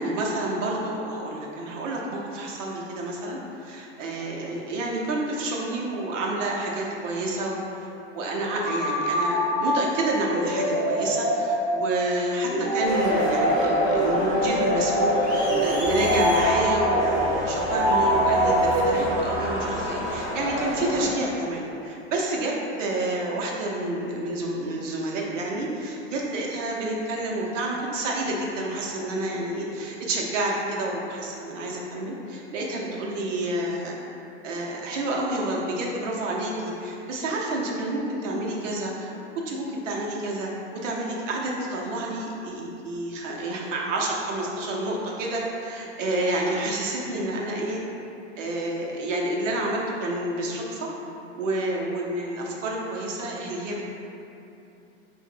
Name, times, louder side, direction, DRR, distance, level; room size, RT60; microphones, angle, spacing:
voice 1, 0.0-34.0 34.4-39.1 39.4-47.8 48.4-50.9 51.4-53.8, right 1 dB, 85° right, -2 dB, 0.9 m, -29 dB
sound 1, 8.6-19.4, equal, 30° right, 1.1 m, -24 dB
Crowd, 12.9-21.0, left 1 dB, 10° left, 1.0 m, -30 dB
4.7 x 2.5 x 3.7 m, 2.9 s
supercardioid pair, 160°, 36 cm